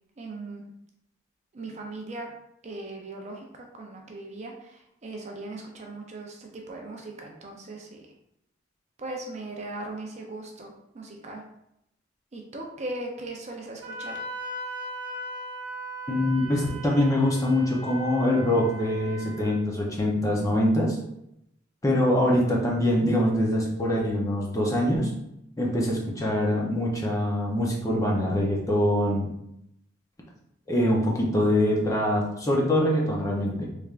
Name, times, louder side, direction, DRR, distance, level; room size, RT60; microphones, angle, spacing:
voice 1, 0.2-0.6 1.5-2.3 2.6-3.4 3.8-8.0 9.0-11.4 12.3-14.2, right 2 dB, 35° right, 1 dB, 0.4 m, -38 dB
Wind instrument woodwind instrument, 13.8-19.6, right 1 dB, 65° right, 1.2 m, -38 dB
voice 2, 16.1-21.0 21.8-25.1 25.6-29.3 30.7-33.7, left 1 dB, 15° left, -2 dB, 0.6 m, -24 dB
3.3 x 3.2 x 2.4 m, 0.80 s
head